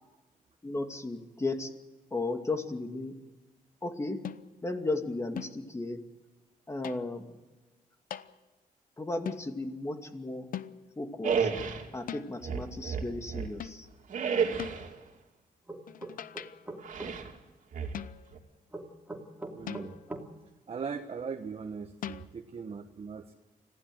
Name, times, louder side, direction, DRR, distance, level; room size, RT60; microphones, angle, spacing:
voice 1, 0.6-1.7 2.1-3.2 3.8-4.2 4.6-6.0 6.7-7.4 9.0-10.5 11.0-11.5 11.9-13.9, left 2 dB, 20° left, 5 dB, 2.5 m, -35 dB
sound 1, 4.2-4.7 5.4-5.7 6.8-7.2 8.1-8.4 9.2-9.5 10.5-11.0 12.1-12.4 13.6-13.9 14.6-14.9 15.9-16.7 17.9-18.5 19.7-20.2 22.0-22.3, left 10 dB, 70° left, 0.8 m, -42 dB
sound 2, 11.2-11.9 12.4-13.6 14.1-14.9 16.8-17.3 17.7-18.4, right 6 dB, 60° right, 2.9 m, -31 dB
sound 3, 15.7-17.1 18.7-20.3, right 2 dB, 10° right, 2.7 m, -41 dB
voice 2, 19.5-20.0 20.7-23.3, right 5 dB, 45° right, 5 dB, 1.2 m, -39 dB
25.5 x 16.0 x 7.9 m, 1.2 s
cardioid pair, 110°, 15 cm